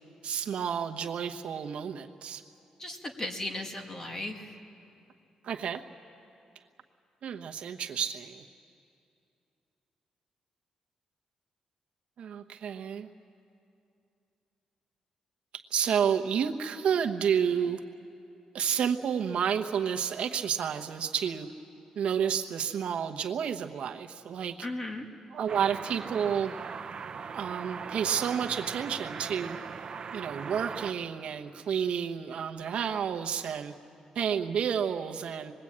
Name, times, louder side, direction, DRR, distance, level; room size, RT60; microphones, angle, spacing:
voice 1, 0.2-2.4 5.4-5.8 7.2-8.4 12.2-13.1 15.7-17.8 18.5-21.5 22.0-24.5 25.3-26.5 27.3-29.6 30.1-33.7 34.1-35.5, right 8 dB, 65° right, 5 dB, 1.0 m, -30 dB
voice 2, 2.8-4.6 24.6-25.1, left 1 dB, 25° left, 3 dB, 2.2 m, -36 dB
sound 1, 25.5-30.9, right 6 dB, 45° right, 1.0 m, -39 dB
25.5 x 20.5 x 8.7 m, 2.7 s
cardioid pair, 120°, 2 cm